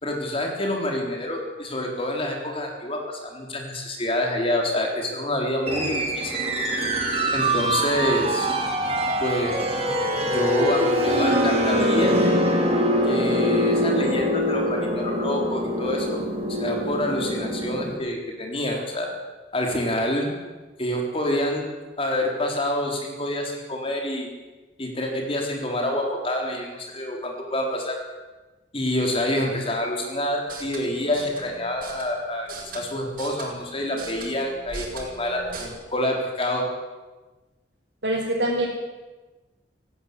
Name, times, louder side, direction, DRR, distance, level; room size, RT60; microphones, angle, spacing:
voice 1, 0.0-6.3 7.3-8.5 9.2-9.6 10.2-12.2 13.0-16.2 16.5-19.1 19.5-20.3 20.8-21.7 22.0-24.3 24.8-28.0 28.7-36.7, left 1 dB, 35° left, 1 dB, 3.8 m, -27 dB
sound 1, 5.7-18.0, equal, 35° right, 4.0 m, -24 dB
sound 2, 30.4-35.7, right 3 dB, 55° right, 5.6 m, -41 dB
voice 2, 38.0-38.7, right 1 dB, 90° right, -5 dB, 4.6 m, -24 dB
18.5 x 17.0 x 8.4 m, 1.2 s
head